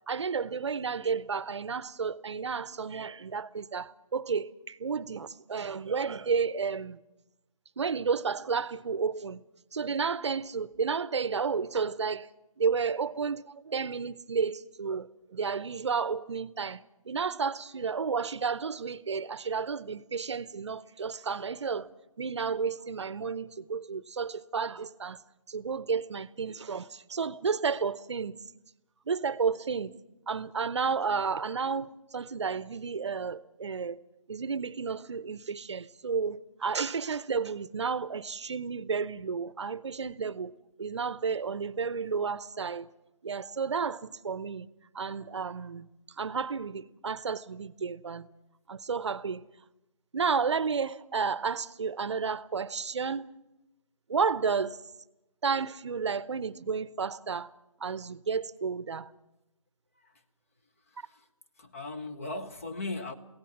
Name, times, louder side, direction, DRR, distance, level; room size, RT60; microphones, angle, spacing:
voice 1, 0.0-7.0 7.8-9.4 9.7-12.3 12.6-21.9 22.2-25.2 25.5-28.3 29.1-29.9 30.3-34.0 34.3-40.5 40.8-42.9 43.2-44.7 44.9-45.9 46.2-48.3 48.7-49.4 50.1-53.3 54.1-54.8 55.4-57.5 57.8-59.1, right 5 dB, 55° right, 0.7 m, -32 dB
voice 2, 60.9-61.3 61.6-63.1, left 2 dB, 25° left, 0.8 m, -38 dB
22.5 x 17.0 x 7.2 m
hypercardioid pair, 170°, 18 cm